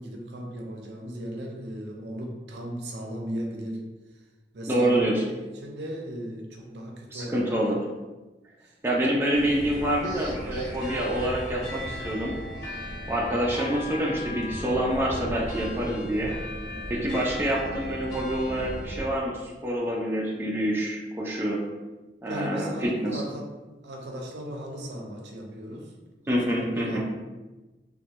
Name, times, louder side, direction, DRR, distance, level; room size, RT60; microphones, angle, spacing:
voice 1, 0.0-3.8 4.5-5.3 5.6-7.5 8.6-8.7 22.2-23.5 23.8-25.9 26.3-27.0, equal, 80° right, 0 dB, 0.5 m, -36 dB
voice 2, 4.7-5.2 7.1-7.8 8.8-12.3 13.1-16.3 16.9-21.6 22.2-23.2 26.3-27.0, right 1 dB, 15° right, -4 dB, 0.4 m, -27 dB
sound 1, 9.3-19.1, equal, 70° left, 1.0 m, -36 dB
sound 2, 9.9-15.2, equal, 15° left, 0.8 m, -44 dB
3.0 x 2.2 x 2.9 m, 1.2 s
head